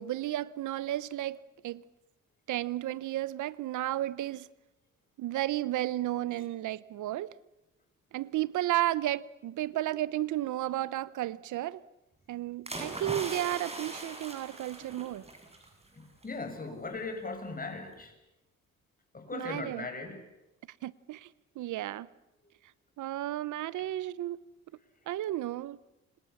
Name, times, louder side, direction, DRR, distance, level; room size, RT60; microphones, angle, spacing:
voice 1, 0.0-1.8 2.5-4.5 5.2-7.3 8.1-11.8 12.3-15.2 19.3-19.9 20.8-21.3 21.6-22.1 23.0-24.4 25.1-25.8, right 14 dB, 80° right, 0.9 m, -33 dB
sound 1, 12.7-15.7 16.0-16.2, right 2 dB, 20° right, 8.0 m, -40 dB
voice 2, 15.9-18.1 19.1-20.2, left 3 dB, 30° left, 7.6 m, -39 dB
29.5 x 27.5 x 7.3 m
cardioid pair, 90°, 30 cm